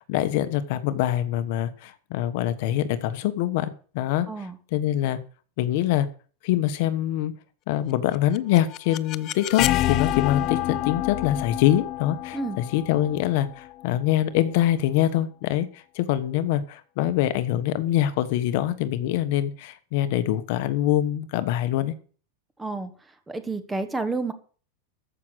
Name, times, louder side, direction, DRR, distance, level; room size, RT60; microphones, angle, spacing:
voice 1, 0.1-5.2 5.6-6.1 6.4-7.3 7.7-21.9, left 12 dB, 55° left, 12 dB, 1.2 m, -24 dB
voice 2, 4.3-4.6 12.3-12.6 22.6-22.9 23.3-24.3, right 3 dB, 10° right, 10 dB, 1.3 m, -29 dB
sound 1, 8.1-14.0, left 15 dB, 35° left, 0.5 m, -28 dB
14.0 x 6.2 x 8.0 m, 0.41 s
supercardioid pair, 160°, 0 cm